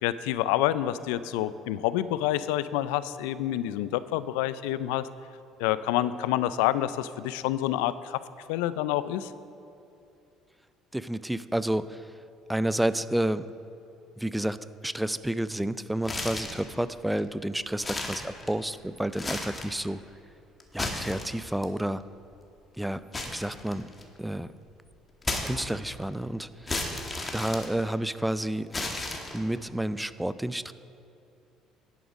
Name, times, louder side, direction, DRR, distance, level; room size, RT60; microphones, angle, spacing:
voice 1, 0.0-5.1 5.6-8.2 8.5-9.3, left 13 dB, 85° left, 15 dB, 0.3 m, -28 dB
voice 2, 10.9-12.1 12.5-13.5 14.2-14.6 14.8-20.0 20.7-22.0 22.8-23.0 23.3-23.9 24.2-24.5 25.4-27.1 27.3-28.7 29.3-30.7, right 1 dB, 5° right, 15 dB, 0.3 m, -30 dB
sound 1, 16.0-16.7 17.2-17.3 17.7-18.7 19.1-19.8 20.6-21.6 23.1-24.2 25.2-26.0 26.7-28.2 28.7-29.6, left 2 dB, 25° left, 1.4 m, -34 dB
10.5 x 7.2 x 5.2 m, 2.7 s
supercardioid pair, 80°, 0 cm